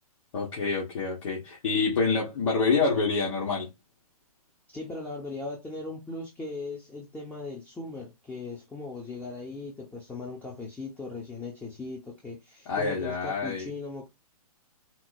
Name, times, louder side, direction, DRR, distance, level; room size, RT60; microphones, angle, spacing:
voice 1, 0.3-3.7 12.7-13.7, left 4 dB, 55° left, 1.7 m, -27 dB
voice 2, 4.7-14.1, left 3 dB, 10° left, 0.8 m, -38 dB
4.3 x 2.1 x 4.2 m
hypercardioid pair, 130°, 19 cm